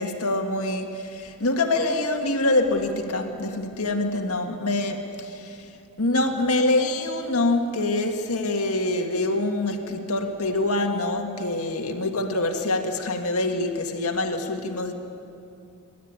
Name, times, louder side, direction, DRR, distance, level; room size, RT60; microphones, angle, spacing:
voice 1, 0.0-5.6 6.0-14.9, left 2 dB, 75° left, 3 dB, 1.9 m, -25 dB
27.5 x 12.5 x 8.8 m, 2.7 s
head